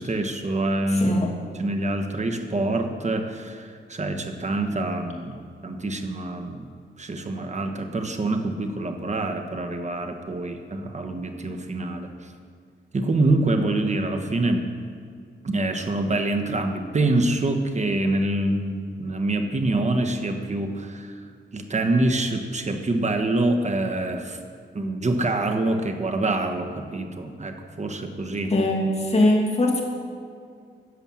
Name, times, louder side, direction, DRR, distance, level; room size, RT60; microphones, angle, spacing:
voice 1, 0.0-1.2 1.6-6.7 7.0-12.1 12.9-14.7 15.4-21.1 21.5-24.4 24.7-28.5, right 2 dB, 35° right, 5 dB, 1.4 m, -25 dB
voice 2, 0.9-1.3 28.5-29.8, left 1 dB, 30° left, -1 dB, 2.6 m, -21 dB
13.0 x 8.0 x 7.6 m, 2.2 s
wide cardioid pair, 105°, 20 cm